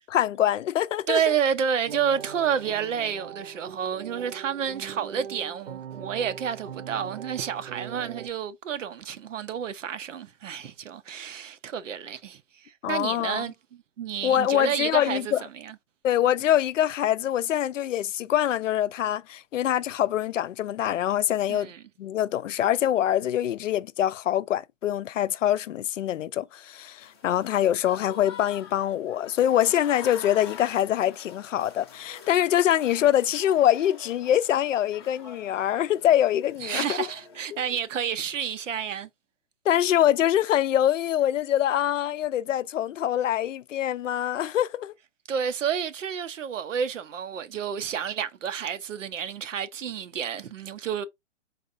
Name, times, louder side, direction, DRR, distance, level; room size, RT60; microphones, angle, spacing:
voice 1, 0.1-1.2 12.8-13.4 14.2-15.4 16.0-21.7 22.0-37.1 37.5-37.6 39.7-44.9, left 11 dB, 85° left, 0.5 m, -24 dB
voice 2, 1.1-15.3 15.6-15.7 21.5-21.8 36.6-39.1 45.3-51.0, right 8 dB, 90° right, 0.7 m, -30 dB
sound 1, 1.9-8.3, right 8 dB, 55° right, 0.8 m, -41 dB
Applause / Crowd, 27.0-37.9, left 6 dB, 20° left, 0.5 m, -46 dB
4.1 x 2.5 x 2.5 m
hypercardioid pair, 160°, 37 cm